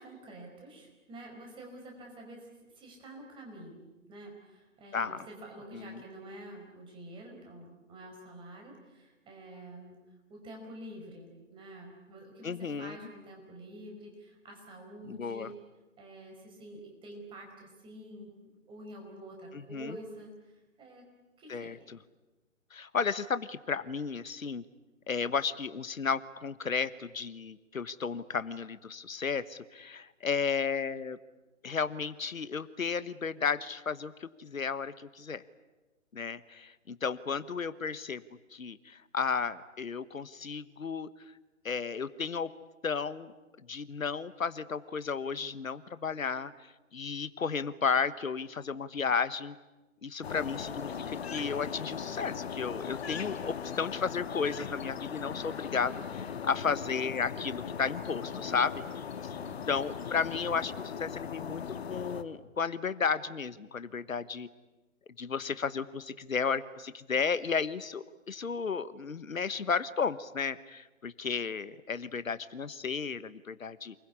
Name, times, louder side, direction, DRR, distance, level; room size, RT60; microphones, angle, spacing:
voice 1, 0.0-10.0 10.3-15.6 16.0-18.3 18.7-21.0 21.4-21.8 59.3-59.7, right 1 dB, 10° right, 1 dB, 5.1 m, -48 dB
voice 2, 4.9-5.3 5.7-6.0 12.4-13.0 15.1-15.5 19.5-20.0 21.5-22.0 22.7-24.6 25.1-31.2 31.6-35.4 36.1-38.2 38.5-41.1 41.6-42.5 42.8-43.3 43.7-46.5 46.9-49.6 50.0-58.8 59.7-61.6 61.9-64.5 65.2-73.9, left 5 dB, 80° left, 15 dB, 1.2 m, -33 dB
sound 1, 50.2-62.2, left 7 dB, 50° left, 1.7 m, -39 dB
28.0 x 21.5 x 9.9 m, 1.1 s
figure-of-eight pair, 140°, 40 cm